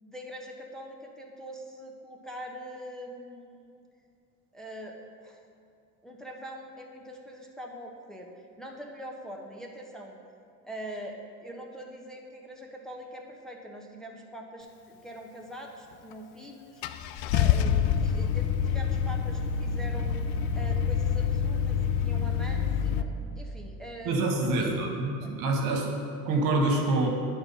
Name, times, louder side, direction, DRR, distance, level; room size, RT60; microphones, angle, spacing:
voice 1, 0.0-3.7 4.5-5.4 6.0-8.3 8.6-10.2 10.6-16.8 17.3-20.2 20.5-24.7 25.0-25.3, equal, ahead, -1 dB, 1.1 m, -43 dB
Car / Engine starting, 16.1-16.2 16.8-23.0, left 7 dB, 65° left, 0.5 m, -27 dB
voice 2, 24.0-26.0 26.2-27.1, right 2 dB, 75° right, 1 dB, 1.4 m, -26 dB
9.4 x 4.5 x 5.4 m, 2.4 s
hypercardioid pair, 75°, 42 cm